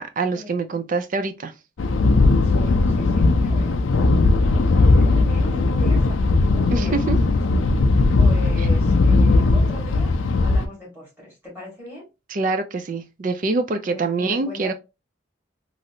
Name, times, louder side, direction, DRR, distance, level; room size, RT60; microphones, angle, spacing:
voice 1, 0.0-1.5 6.7-7.2 12.3-14.7, right 3 dB, 45° right, 0.4 m, -25 dB
sound 1, 1.8-10.7, left 3 dB, 85° left, 0.4 m, -18 dB
voice 2, 2.4-3.8 5.1-7.0 8.1-12.1 13.8-14.7, left 1 dB, 10° right, 1.6 m, -38 dB
3.0 x 2.6 x 2.7 m
head